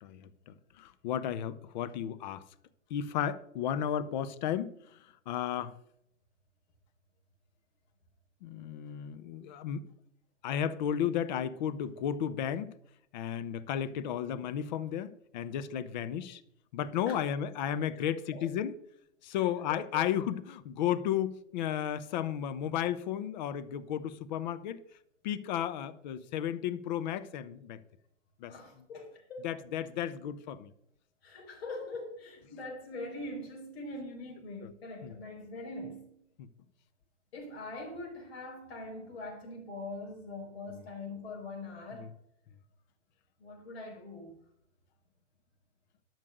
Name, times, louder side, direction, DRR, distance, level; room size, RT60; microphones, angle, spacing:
voice 1, 0.0-2.4 2.9-4.7 5.3-5.8 8.4-9.9 10.4-12.7 13.1-16.4 16.7-18.8 19.2-24.8 25.2-27.8 28.4-28.5 29.4-30.7 35.0-35.1 36.4-36.5 40.7-40.8 41.9-42.1, left 9 dB, 35° left, 0.8 m, -33 dB
voice 2, 18.0-18.5 19.3-19.4 19.7-20.1 28.5-29.5 31.2-36.2 37.3-42.1 43.4-44.3, left 2 dB, 55° left, 4.8 m, -43 dB
12.0 x 6.5 x 6.4 m
figure-of-eight pair, 115°, 38 cm